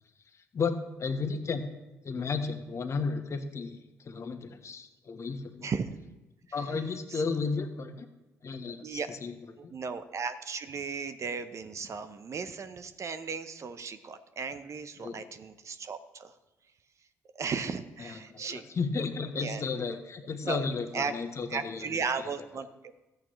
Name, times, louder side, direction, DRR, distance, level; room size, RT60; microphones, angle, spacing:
voice 1, 0.3-1.6 2.0-5.7 6.5-8.1 8.4-9.4 9.6-9.7 15.0-15.2 18.0-22.3, left 4 dB, 45° left, 7 dB, 1.3 m, -34 dB
voice 2, 9.6-16.3 17.3-18.7 19.4-19.6 20.4-20.6 20.9-21.1 21.5-22.9, right 5 dB, 50° right, 10 dB, 0.8 m, -36 dB
14.0 x 8.7 x 3.2 m, 1.0 s
hypercardioid pair, 50°, 7 cm